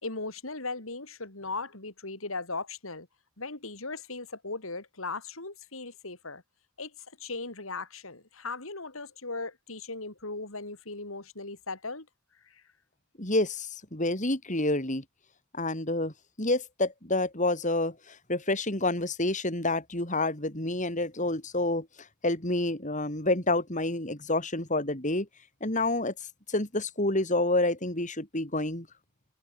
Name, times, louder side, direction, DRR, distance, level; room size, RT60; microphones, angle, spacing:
voice 1, 0.0-3.1 3.4-6.4 6.8-6.9 7.2-12.1 12.5-12.6, left 3 dB, 75° left, 4.4 m, -38 dB
voice 2, 13.2-15.0 15.5-16.1 16.4-21.9 22.2-25.3 25.6-26.1 26.5-28.9, left 2 dB, 35° left, 5.1 m, -28 dB
head